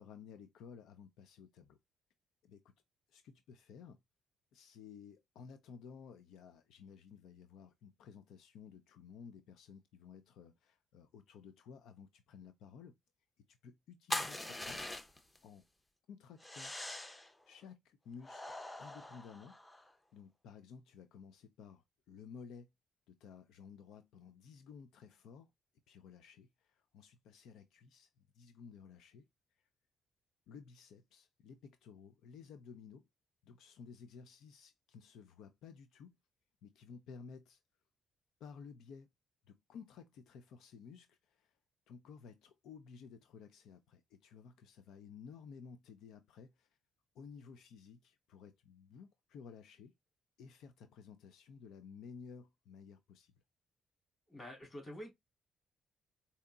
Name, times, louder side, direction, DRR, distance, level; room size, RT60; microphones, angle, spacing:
voice 1, 0.0-1.8 2.4-2.6 3.1-4.0 4.5-13.0 13.5-14.8 15.1-15.7 16.1-16.7 17.5-19.6 20.1-22.7 23.1-25.5 25.9-29.3 29.5-29.7 30.5-33.1 33.4-36.2 36.6-37.6 38.4-39.1 39.5-41.6 41.9-46.8 47.1-49.9 50.4-53.3, left 6 dB, 85° left, 0.4 m, -55 dB
sound 1, 14.1-15.4 16.4-17.3 18.2-19.9, left 1 dB, 15° left, 0.6 m, -42 dB
voice 2, 54.3-55.1, equal, 35° left, 3.0 m, -47 dB
4.8 x 2.8 x 2.2 m
cardioid pair, 90°, 0 cm